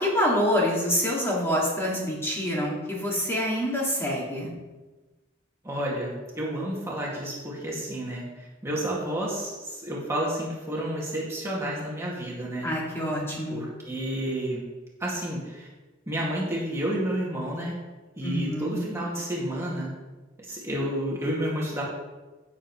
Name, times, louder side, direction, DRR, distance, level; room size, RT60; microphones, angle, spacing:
voice 1, 0.0-4.5 12.6-13.6 18.2-18.8, equal, 15° left, -5 dB, 2.1 m, -26 dB
voice 2, 5.6-8.2 8.6-12.7 13.5-14.6 15.0-15.7 16.1-17.7 18.2-19.9 20.5-21.8, right 1 dB, 15° right, -5 dB, 2.1 m, -30 dB
15.5 x 7.3 x 3.1 m, 1.2 s
head